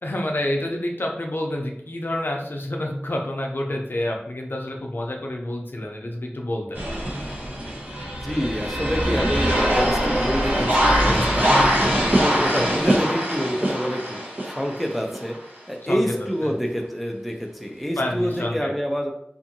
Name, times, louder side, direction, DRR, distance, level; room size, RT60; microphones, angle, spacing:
voice 1, 0.0-7.1 11.3-11.8 12.5-13.0 15.8-16.0 16.4-16.5 18.0-18.7, left 1 dB, 60° left, 1 dB, 0.5 m, -28 dB
sound 1, 6.8-15.3 15.9-16.0 18.4-18.5, equal, 50° right, 0.9 m, -22 dB
voice 2, 8.2-11.7 12.1-14.2 14.4-15.4 15.7-19.1, equal, ahead, 2 dB, 0.4 m, -27 dB
2.6 x 2.5 x 2.6 m, 0.75 s
wide cardioid pair, 45°, 4 cm